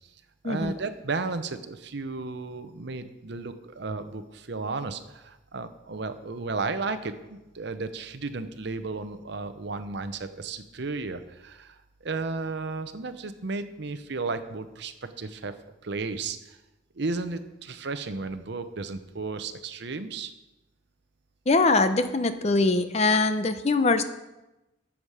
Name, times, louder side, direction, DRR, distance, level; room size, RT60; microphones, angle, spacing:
voice 1, 0.4-11.8 12.0-15.5 15.8-16.6 16.9-20.3, right 3 dB, 60° right, 10 dB, 0.7 m, -34 dB
voice 2, 21.5-24.0, left 3 dB, 35° left, 10 dB, 0.6 m, -22 dB
12.0 x 7.3 x 4.8 m, 1.0 s
head